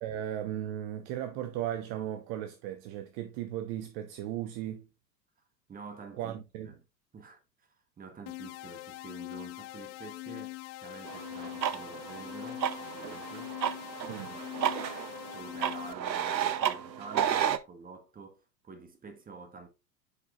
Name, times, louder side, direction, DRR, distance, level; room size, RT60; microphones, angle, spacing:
voice 1, 0.0-4.9 6.2-6.7 14.1-14.4, right 11 dB, 40° right, 0.8 m, -36 dB
voice 2, 5.7-6.8 7.1-7.7 8.0-13.6 14.1-14.3 14.6-14.7 15.3-19.7, right 4 dB, 15° right, 1.4 m, -49 dB
sound 1, 8.3-15.9, left 20 dB, 40° left, 0.5 m, -43 dB
sound 2, 11.1-17.6, right 9 dB, 85° right, 0.7 m, -33 dB
9.6 x 4.7 x 2.4 m
figure-of-eight pair, 90°, 50 cm